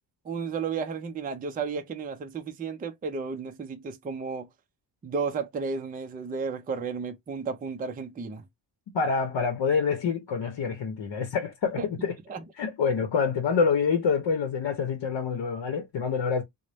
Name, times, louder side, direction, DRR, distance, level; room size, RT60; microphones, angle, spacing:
voice 1, 0.2-4.5 5.0-8.4 11.8-11.9 12.3-12.4, right 5 dB, 20° right, 0.3 m, -33 dB
voice 2, 8.9-12.1 12.6-16.4, left 5 dB, 65° left, 0.8 m, -26 dB
3.9 x 2.1 x 3.3 m
wide cardioid pair, 175°, 44 cm